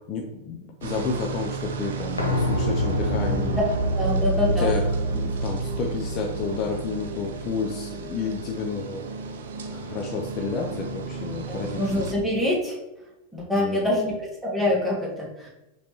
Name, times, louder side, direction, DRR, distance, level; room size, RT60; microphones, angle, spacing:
voice 1, 0.1-3.6 4.1-4.8 5.1-9.0 9.6-12.1 13.5-14.0, left 5 dB, 40° left, 2 dB, 0.5 m, -31 dB
sound 1, 0.8-12.1, right 5 dB, 65° right, 0.5 m, -34 dB
sound 2, 2.2-7.8 8.1-8.2, right 1 dB, 90° left, 0.7 m, -27 dB
voice 2, 3.9-4.7 11.5-12.8 13.3-15.5, left 1 dB, ahead, -6 dB, 1.6 m, -25 dB
5.0 x 3.2 x 2.9 m, 0.95 s
figure-of-eight pair, 90°, 0 cm